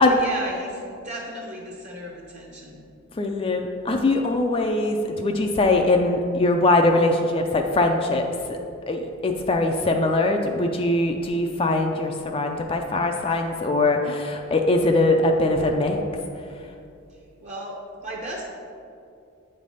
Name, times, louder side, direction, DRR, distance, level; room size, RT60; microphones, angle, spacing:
voice 1, 0.0-2.9 17.1-18.4, right 1 dB, 35° right, -2 dB, 0.7 m, -35 dB
voice 2, 3.2-8.6 8.9-16.0, left 2 dB, 25° left, 3 dB, 0.3 m, -22 dB
8.2 x 3.3 x 5.4 m, 2.5 s
head